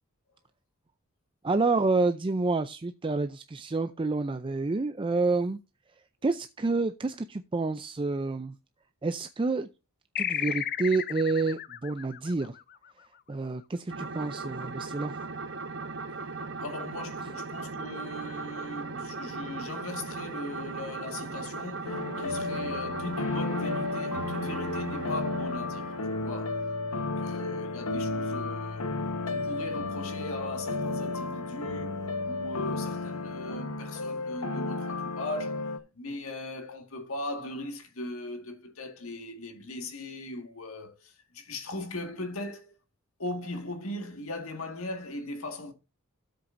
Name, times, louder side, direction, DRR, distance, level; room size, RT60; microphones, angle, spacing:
voice 1, 1.4-5.6 6.2-8.5 9.0-9.7 10.2-12.6 13.3-15.1, right 3 dB, 25° right, 0.4 m, -28 dB
sound 1, 10.2-13.2, left 9 dB, 45° left, 0.5 m, -34 dB
sound 2, 13.9-26.7, right 3 dB, 55° right, 1.1 m, -38 dB
voice 2, 16.6-26.6 26.9-28.9 29.3-35.7 36.0-42.7 43.2-45.7, left 2 dB, 70° left, 1.8 m, -39 dB
sound 3, 21.9-35.8, left 3 dB, 85° left, 1.2 m, -33 dB
13.0 x 7.8 x 2.6 m
head